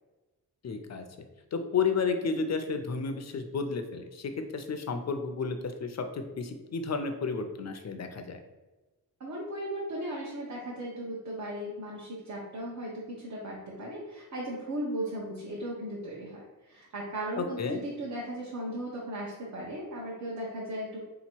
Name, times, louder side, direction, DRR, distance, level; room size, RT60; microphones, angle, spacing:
voice 1, 0.6-8.4 17.4-17.8, left 5 dB, 45° left, 7 dB, 0.5 m, -32 dB
voice 2, 9.2-21.0, right 1 dB, 45° right, -5 dB, 1.0 m, -37 dB
3.7 x 2.9 x 4.4 m, 1.1 s
wide cardioid pair, 155°, 38 cm